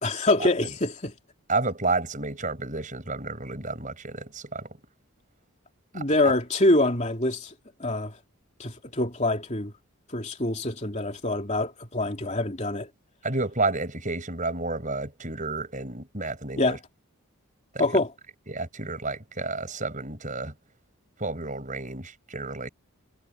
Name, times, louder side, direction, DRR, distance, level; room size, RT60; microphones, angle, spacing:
voice 1, 0.0-1.1 5.9-7.5 7.8-8.1 8.6-9.7 10.1-12.9 16.6-16.8 17.8-18.1, left 2 dB, 30° left, 3.2 m, -25 dB
voice 2, 1.5-4.7 5.9-6.3 13.2-16.8 17.7-17.8 18.5-20.5 21.2-22.7, right 3 dB, 35° right, 6.4 m, -31 dB
head